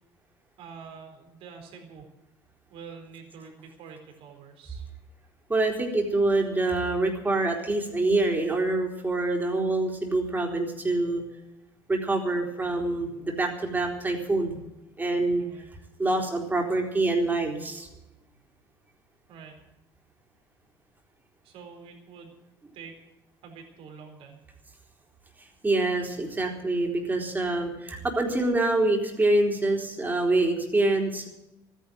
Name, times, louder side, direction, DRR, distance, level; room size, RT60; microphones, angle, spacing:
voice 1, 0.6-2.1 2.7-4.8 15.4-15.7 19.3-19.6 21.4-22.3 22.7-23.0 23.4-24.4, right 6 dB, 65° right, 2 dB, 4.2 m, -46 dB
voice 2, 5.5-11.2 11.9-14.6 15.0-15.4 16.0-17.9 25.4-31.3, right 2 dB, 20° right, 1 dB, 4.1 m, -26 dB
13.5 x 10.0 x 9.3 m, 0.92 s
supercardioid pair, 90°, 10 cm